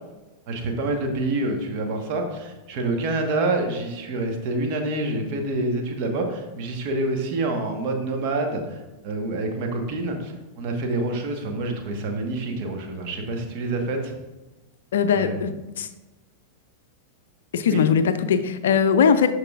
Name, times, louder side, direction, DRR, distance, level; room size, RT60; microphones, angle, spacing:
voice 1, 0.5-14.1 15.1-15.4 17.7-17.8, right 2 dB, 45° right, 3 dB, 1.2 m, -27 dB
voice 2, 14.9-15.9 17.5-19.3, left 6 dB, 60° left, 11 dB, 0.4 m, -20 dB
12.0 x 4.7 x 2.4 m, 1.1 s
figure-of-eight pair, 90°, 0 cm